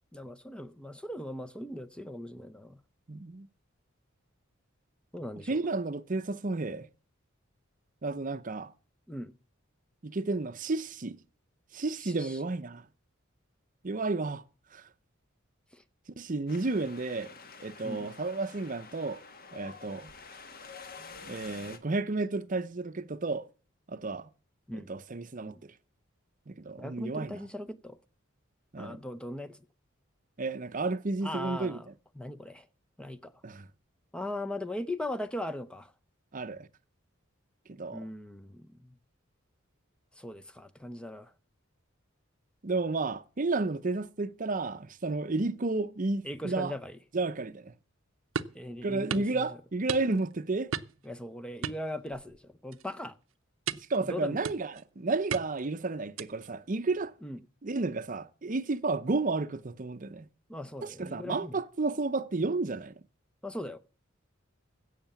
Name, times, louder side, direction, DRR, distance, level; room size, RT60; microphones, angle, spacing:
voice 1, 0.1-2.8 5.1-5.6 9.1-9.3 12.0-12.4 15.7-15.8 17.8-18.1 24.7-24.9 25.5-25.6 26.8-28.0 28.8-29.6 31.2-31.9 32.2-32.7 33.0-33.3 34.1-35.9 37.9-39.0 40.2-41.3 46.2-47.0 48.5-49.5 51.0-53.2 54.0-54.4 57.2-57.4 60.5-61.6 63.4-63.8, left 1 dB, 5° left, 0.6 m, -39 dB
voice 2, 3.1-3.5 5.5-6.9 8.0-8.7 10.0-11.2 11.7-12.8 13.8-14.4 14.7-14.9 16.2-17.3 17.6-19.2 19.5-20.1 21.2-23.5 23.9-24.3 24.7-25.7 26.5-27.4 28.7-29.0 30.4-31.8 33.4-33.7 36.3-36.7 37.7-38.1 42.6-46.7 47.1-47.7 48.8-50.7 53.7-57.1 57.6-60.3 60.8-62.9, right 3 dB, 40° right, 0.7 m, -32 dB
Wind, 16.5-21.8, left 5 dB, 45° left, 1.5 m, -48 dB
sound 1, 48.4-48.6 49.1-49.3 49.9-50.3 50.7-51.1 51.6-52.4 52.7-53.0 53.7-54.0 54.4-54.8 55.3-55.7 56.2-56.5, right 6 dB, 80° right, 0.7 m, -36 dB
16.5 x 6.6 x 7.0 m
head